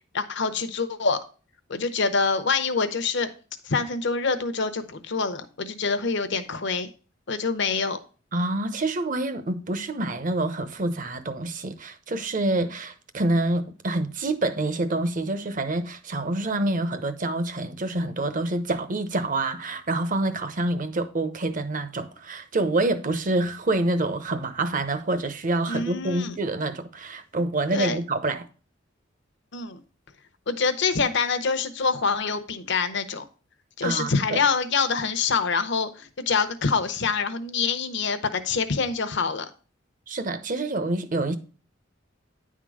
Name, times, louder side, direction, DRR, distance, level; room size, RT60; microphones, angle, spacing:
voice 1, 0.1-1.2 1.7-3.3 3.6-6.9 7.3-8.0 25.7-26.4 27.7-28.0 29.5-29.8 30.5-33.2 33.8-39.5, left 4 dB, 60° left, 0.8 m, -25 dB
voice 2, 8.3-28.5 33.8-34.4 40.1-41.4, right 2 dB, 40° right, 0.8 m, -27 dB
9.8 x 3.8 x 4.8 m
head